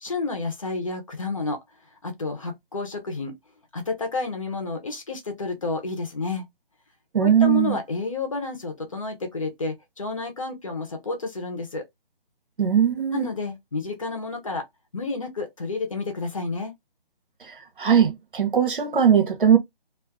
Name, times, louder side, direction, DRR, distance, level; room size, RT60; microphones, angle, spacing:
voice 1, 0.0-1.6 2.0-3.4 3.7-6.4 7.2-11.8 13.1-14.7 14.9-16.7, left 3 dB, 35° left, 0.7 m, -30 dB
voice 2, 7.1-7.8 12.6-13.3 17.8-19.6, right 8 dB, 60° right, 0.9 m, -19 dB
2.4 x 2.3 x 3.4 m
hypercardioid pair, 165°, 30 cm